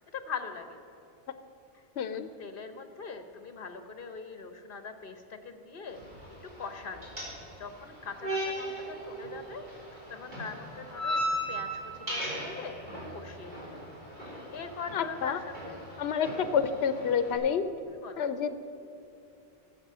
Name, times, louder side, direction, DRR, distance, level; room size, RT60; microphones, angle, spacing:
voice 1, 0.1-0.8 1.7-1.8 2.1-6.0 6.4-7.1 7.6-9.6 9.9-11.2 11.5-13.8 14.2-15.8 16.2-16.4 16.9-17.0 17.9-18.3, left 5 dB, 60° left, 8 dB, 1.2 m, -42 dB
voice 2, 2.0-2.3 14.9-15.4 16.0-16.3 16.5-17.6 18.2-18.5, left 7 dB, 75° left, 11 dB, 0.9 m, -28 dB
sound 1, 5.9-17.4, equal, 45° right, 3.7 m, -38 dB
14.5 x 7.6 x 6.7 m, 2.7 s
omnidirectional pair, 1.1 m